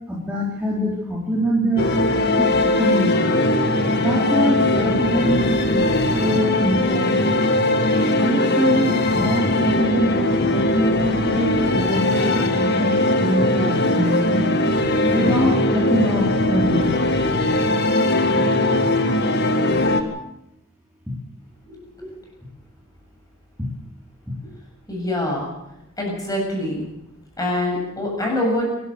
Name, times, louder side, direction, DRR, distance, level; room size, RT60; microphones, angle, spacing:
voice 1, 0.1-1.9 2.4-2.5 2.7-3.2 4.0-5.8 6.1-7.2 8.1-14.6 15.1-17.1 22.0-22.1, equal, 5° right, -5 dB, 3.5 m, -24 dB
sound 1, 1.8-20.0, left 1 dB, 50° left, 1.8 m, -20 dB
voice 2, 24.9-25.5 26.0-26.9 27.4-28.7, left 1 dB, 15° left, -1 dB, 7.4 m, -24 dB
26.0 x 12.0 x 8.1 m, 0.84 s
head